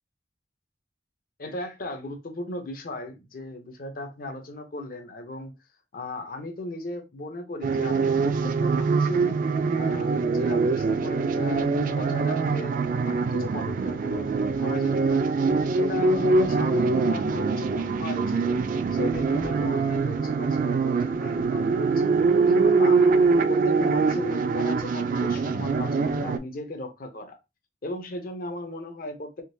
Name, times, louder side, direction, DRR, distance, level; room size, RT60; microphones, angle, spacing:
voice 1, 1.4-5.5 5.9-9.4 9.7-15.3 15.8-18.6 18.9-23.2 23.5-27.4 27.8-29.4, left 1 dB, 50° left, 0.7 m, -37 dB
sound 1, 7.6-26.4, right 4 dB, 50° right, 0.3 m, -23 dB
3.6 x 2.9 x 2.6 m
head